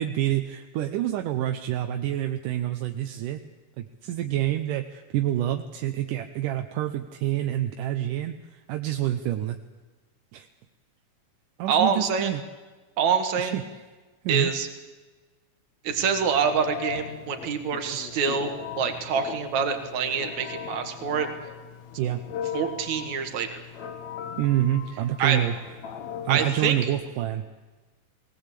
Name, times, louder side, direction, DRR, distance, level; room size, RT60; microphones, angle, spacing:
voice 1, 0.0-3.4 3.8-9.6 10.3-10.5 11.6-12.4 13.4-13.8 14.2-14.5 22.0-22.2 24.4-25.5 26.2-27.4, right 12 dB, 80° right, 6 dB, 2.4 m, -27 dB
voice 2, 11.7-12.3 13.0-13.6 14.3-14.7 15.8-18.5 18.8-21.3 22.5-23.6 25.2-25.4 26.3-26.8, right 6 dB, 65° right, 6 dB, 2.9 m, -25 dB
Telephone, 15.9-27.1, left 8 dB, 65° left, 2.5 m, -39 dB
20.5 x 17.5 x 8.4 m, 1.3 s
omnidirectional pair, 3.7 m